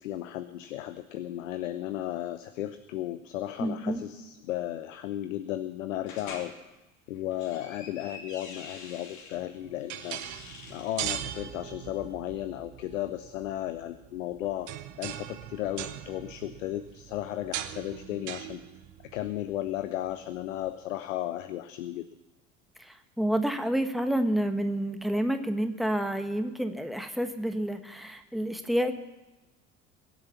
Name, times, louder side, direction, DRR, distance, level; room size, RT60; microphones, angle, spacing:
voice 1, 0.0-6.5 7.1-10.2 10.7-14.7 15.0-18.6 19.1-22.0, left 13 dB, 70° left, 11 dB, 0.8 m, -35 dB
voice 2, 3.6-4.0 22.8-29.0, right 1 dB, ahead, 7 dB, 1.4 m, -29 dB
sound 1, 6.1-6.5 7.2-9.4 9.8-11.1, left 4 dB, 45° left, 3.0 m, -46 dB
sound 2, 9.3-20.7, right 12 dB, 45° right, 1.1 m, -41 dB
21.5 x 8.0 x 7.2 m, 1.1 s
figure-of-eight pair, 65°, 41 cm